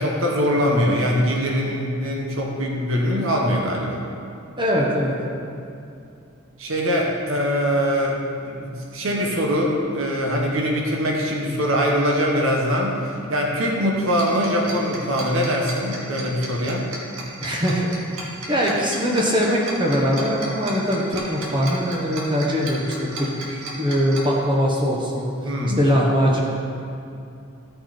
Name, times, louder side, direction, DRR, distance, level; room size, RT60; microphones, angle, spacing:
voice 1, 0.0-4.0 6.6-8.2 8.5-16.9 25.4-25.8, equal, 65° right, -1 dB, 1.4 m, -22 dB
voice 2, 4.6-5.2 17.4-25.3 25.8-26.4, equal, 20° right, -3 dB, 1.0 m, -22 dB
Tick-tock, 14.1-24.2, right 2 dB, 85° right, 2.0 m, -34 dB
14.0 x 5.7 x 4.4 m, 2.6 s
head